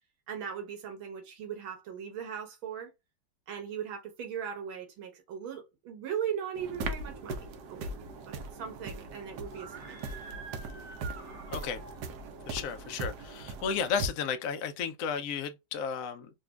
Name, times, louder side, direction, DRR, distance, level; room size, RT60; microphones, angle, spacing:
voice 1, 0.3-2.9 3.5-7.9 8.3-10.0, right 8 dB, 85° right, 1.8 m, -38 dB
sound 1, 6.6-14.1, right 3 dB, 70° right, 1.0 m, -40 dB
Screaming, 9.4-12.2, right 5 dB, 45° right, 1.0 m, -47 dB
voice 2, 11.5-11.8 12.5-16.3, left 7 dB, 80° left, 0.7 m, -33 dB
4.0 x 2.6 x 2.2 m
omnidirectional pair, 2.2 m